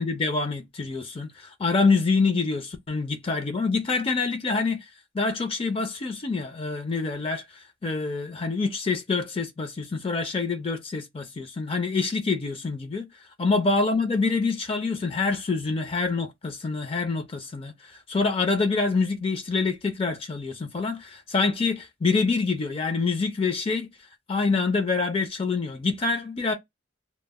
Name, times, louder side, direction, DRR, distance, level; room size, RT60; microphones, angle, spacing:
voice 1, 0.0-4.8 5.1-13.0 13.4-23.9 24.3-26.5, left 4 dB, 30° left, 0.4 m, -26 dB
2.0 x 2.0 x 3.3 m
head